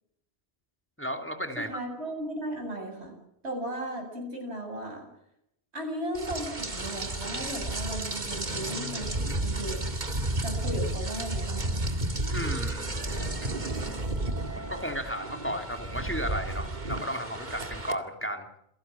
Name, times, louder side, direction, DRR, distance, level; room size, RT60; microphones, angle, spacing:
voice 1, 1.0-1.7 12.3-13.7 14.6-18.5, equal, 10° left, 5 dB, 2.8 m, -34 dB
voice 2, 1.6-3.1 3.4-5.1 5.7-10.0 10.4-11.8, right 1 dB, 90° right, 3 dB, 8.4 m, -36 dB
Rain, 6.1-17.9, right 1 dB, 45° right, 2.2 m, -32 dB
28.0 x 18.0 x 7.5 m, 0.75 s
omnidirectional pair, 1.1 m